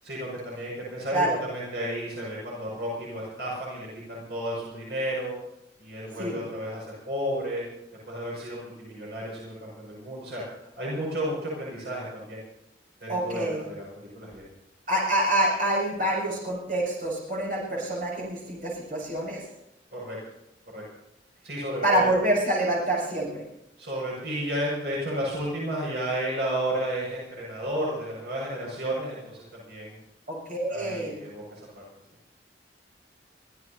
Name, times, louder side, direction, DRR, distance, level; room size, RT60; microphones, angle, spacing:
voice 1, 0.0-5.3 5.8-7.6 8.1-10.4 10.8-12.4 13.0-14.4 19.9-20.2 20.7-20.8 21.4-22.1 23.8-30.0 30.7-31.8, right 1 dB, 70° right, -5 dB, 6.4 m, -32 dB
voice 2, 13.1-13.6 14.9-19.5 21.8-23.4 30.3-31.2, right 1 dB, 55° right, -3 dB, 7.6 m, -26 dB
25.5 x 16.0 x 2.8 m, 0.83 s
head